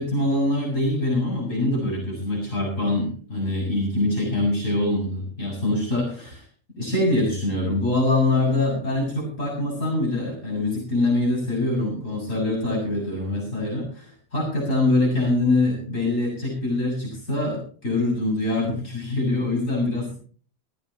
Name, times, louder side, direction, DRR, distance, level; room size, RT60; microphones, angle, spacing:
voice 1, 0.0-6.4 6.8-20.1, left 2 dB, 80° left, -1 dB, 7.5 m, -24 dB
18.0 x 15.5 x 3.0 m, 0.42 s
omnidirectional pair, 1.3 m